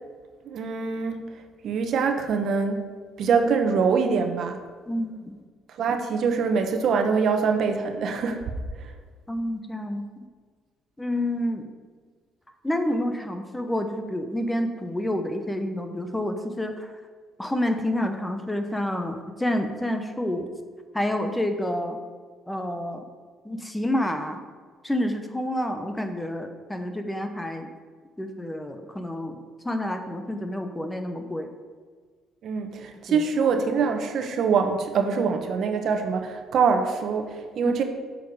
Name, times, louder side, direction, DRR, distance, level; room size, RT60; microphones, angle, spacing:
voice 1, 0.4-1.2 1.6-2.8 3.2-4.6 5.7-8.4 8.8-8.9 32.4-37.8, right 5 dB, 60° right, 6 dB, 1.0 m, -24 dB
voice 2, 4.9-5.3 9.3-10.0 11.0-11.7 12.6-16.9 17.4-20.5 20.9-22.0 22.5-23.1 23.4-24.4 24.8-27.7 28.2-29.4 29.6-31.5 33.1-33.2 37.6-37.8, left 1 dB, 10° left, 6 dB, 0.9 m, -28 dB
8.1 x 6.5 x 4.8 m, 1.5 s
cardioid pair, 90°, 0 cm